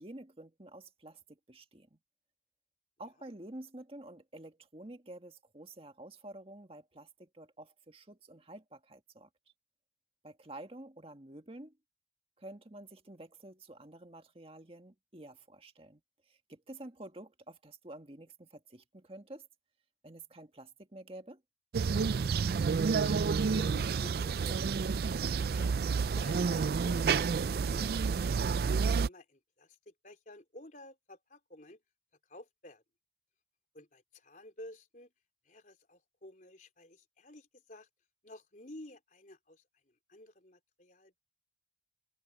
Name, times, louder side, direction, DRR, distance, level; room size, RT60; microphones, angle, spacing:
voice 1, 0.0-2.0 3.0-9.3 10.2-11.7 12.4-16.0 16.3-19.5 20.0-21.4, right 1 dB, 30° right, 1.8 m, -50 dB
sound 1, 21.7-29.1, right 5 dB, 60° right, 0.4 m, -29 dB
voice 2, 23.0-25.7 26.2-28.1 28.4-29.8 30.0-31.8 32.3-32.8 33.7-35.1 35.5-37.9 38.2-39.6 40.1-41.2, left 1 dB, 45° left, 4.1 m, -51 dB
head